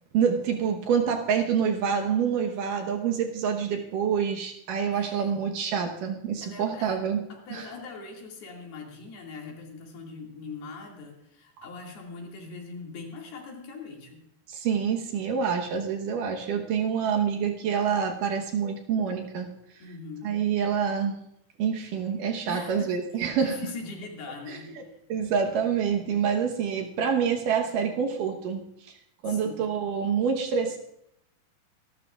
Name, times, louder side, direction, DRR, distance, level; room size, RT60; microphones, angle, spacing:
voice 1, 0.1-7.2 7.5-7.7 11.6-11.7 14.5-19.5 20.2-21.2 21.6-23.6 24.5-24.8 25.1-28.9 29.2-30.8, right 7 dB, 70° right, 3 dB, 2.5 m, -27 dB
voice 2, 4.9-5.4 6.4-7.0 7.3-14.2 19.8-20.3 22.5-25.0 29.2-29.6, left 4 dB, 85° left, 0 dB, 4.3 m, -41 dB
25.0 x 12.5 x 2.4 m, 0.77 s
omnidirectional pair, 4.3 m